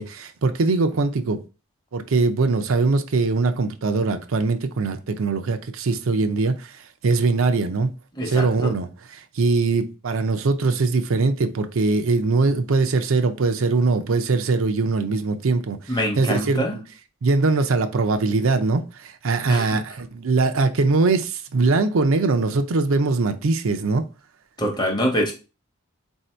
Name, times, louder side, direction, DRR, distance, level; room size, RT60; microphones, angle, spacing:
voice 1, 0.0-1.4 1.9-7.9 8.3-8.9 9.2-15.9 16.2-16.8 17.2-24.1, right 3 dB, 75° right, 0.5 m, -21 dB
voice 2, 8.2-8.7 15.9-16.8 19.5-19.8 24.6-25.3, equal, 20° left, 0.9 m, -24 dB
4.1 x 2.7 x 4.3 m
head